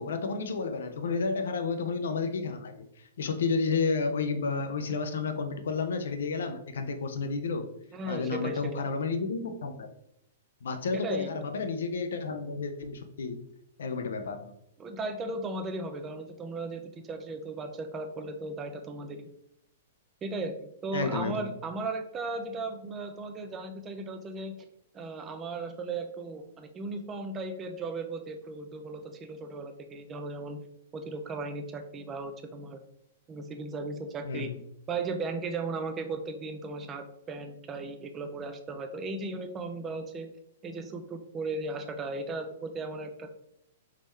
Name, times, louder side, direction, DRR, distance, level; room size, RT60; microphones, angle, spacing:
voice 1, 0.0-2.7 3.2-7.7 8.0-9.9 10.6-13.4 13.8-14.5 20.9-21.5 34.2-34.6, left 4 dB, 70° left, 7 dB, 0.5 m, -31 dB
voice 2, 7.9-8.9 10.9-11.4 14.8-19.3 20.2-24.7 24.9-30.6 30.9-32.8 33.3-34.5 34.9-40.3 40.6-43.3, right 3 dB, 25° right, 6 dB, 0.5 m, -36 dB
3.6 x 3.0 x 3.2 m, 0.75 s
figure-of-eight pair, 110°, 0 cm